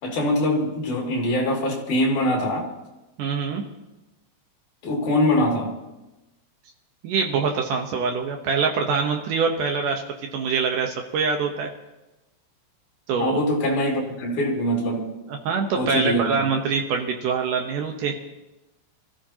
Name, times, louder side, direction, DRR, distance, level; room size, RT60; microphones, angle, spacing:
voice 1, 0.0-2.7 4.8-5.7 13.2-15.1 15.8-16.4, left 1 dB, 45° left, -1 dB, 3.6 m, -23 dB
voice 2, 3.2-3.6 7.0-10.0 10.3-11.7 13.1-13.4 15.3-18.1, right 5 dB, 90° right, 2 dB, 1.8 m, -24 dB
25.0 x 15.0 x 2.9 m, 1.0 s
omnidirectional pair, 5.4 m